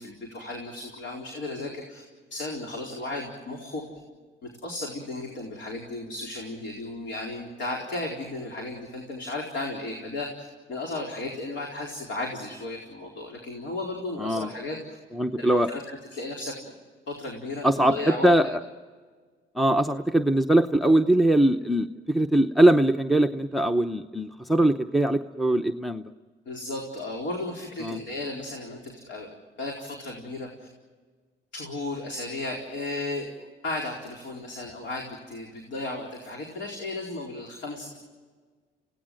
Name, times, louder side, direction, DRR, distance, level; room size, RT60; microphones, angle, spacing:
voice 1, 0.0-2.0 2.3-3.8 4.6-14.8 15.4-16.7 17.1-18.3 26.5-29.3 29.6-30.7 31.5-33.3 33.6-38.0, left 2 dB, 65° left, 0 dB, 4.4 m, -35 dB
voice 2, 14.2-14.5 15.1-15.7 17.6-18.6 19.5-26.0 27.8-28.0, right 1 dB, ahead, 9 dB, 0.8 m, -22 dB
29.0 x 17.5 x 7.7 m, 1.5 s
cardioid pair, 90°, 20 cm